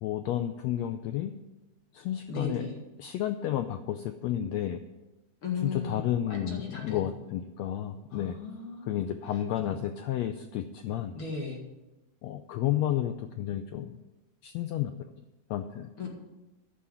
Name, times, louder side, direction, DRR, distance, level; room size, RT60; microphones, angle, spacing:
voice 1, 0.0-1.3 1.9-2.6 3.0-4.8 5.6-8.3 8.9-11.2 12.2-14.0 14.4-14.9 15.5-15.9, left 11 dB, 80° left, 8 dB, 1.5 m, -31 dB
voice 2, 2.3-2.8 5.4-7.1 8.1-9.0 9.3-9.4 9.7-9.8 11.1-11.6 16.0-16.1, left 4 dB, 45° left, 0 dB, 2.5 m, -37 dB
11.5 x 6.3 x 9.0 m, 1.0 s
omnidirectional pair, 3.7 m